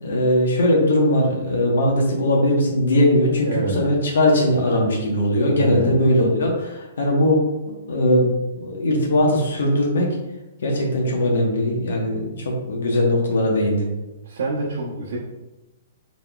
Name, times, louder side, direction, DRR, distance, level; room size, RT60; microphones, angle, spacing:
voice 1, 0.0-7.4 7.9-8.3 8.6-10.2 10.6-13.9, left 1 dB, 80° left, -1 dB, 1.0 m, -20 dB
voice 2, 3.4-3.9 5.6-6.0 14.2-15.2, right 3 dB, 70° right, -4 dB, 0.8 m, -27 dB
4.2 x 3.7 x 2.3 m, 1.0 s
hypercardioid pair, 175°, 0 cm